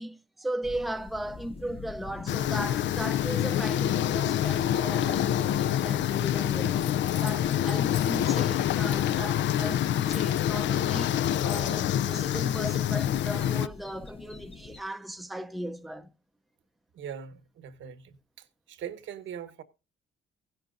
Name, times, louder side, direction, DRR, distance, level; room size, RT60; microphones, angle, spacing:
voice 1, 0.0-6.9 7.2-16.1, right 1 dB, ahead, 0.6 m, -37 dB
sound 1, 0.6-14.8, left 4 dB, 30° left, 0.8 m, -45 dB
sound 2, 2.3-13.7, left 11 dB, 65° left, 0.4 m, -26 dB
sound 3, 6.8-8.4 8.7-9.1 9.4-11.8, left 7 dB, 50° left, 3.2 m, -46 dB
voice 2, 16.9-19.6, right 8 dB, 75° right, 1.2 m, -41 dB
16.0 x 10.0 x 2.6 m
cardioid pair, 90°, 20 cm